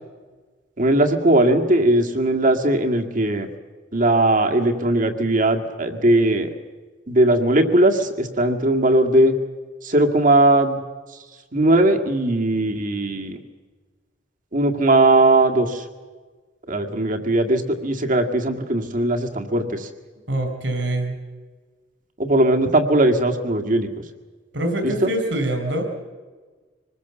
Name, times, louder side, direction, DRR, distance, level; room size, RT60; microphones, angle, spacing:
voice 1, 0.8-3.5 3.9-6.5 7.1-9.4 9.8-10.8 11.5-13.4 14.5-15.8 16.7-19.9 22.2-23.9 24.8-25.1, right 1 dB, 45° right, 4 dB, 2.0 m, -19 dB
voice 2, 20.3-21.2 24.5-25.8, right 1 dB, 75° right, 6 dB, 4.3 m, -24 dB
25.5 x 20.5 x 7.2 m, 1.4 s
head